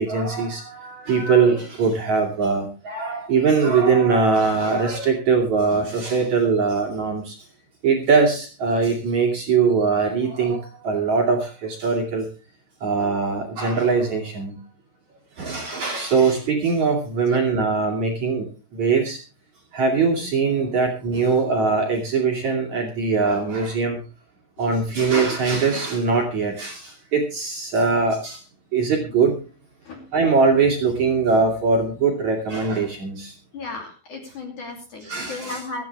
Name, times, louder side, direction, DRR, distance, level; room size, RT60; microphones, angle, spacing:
voice 1, 0.0-7.4 7.8-12.3 12.8-14.6 15.4-18.5 18.7-19.2 19.7-24.0 24.6-28.4 28.7-29.4 30.1-33.3 35.0-35.6, right 4 dB, 45° right, 1 dB, 3.1 m, -21 dB
voice 2, 33.5-35.8, left 3 dB, 45° left, 2 dB, 3.8 m, -35 dB
17.0 x 14.5 x 3.4 m, 0.32 s
omnidirectional pair, 5.4 m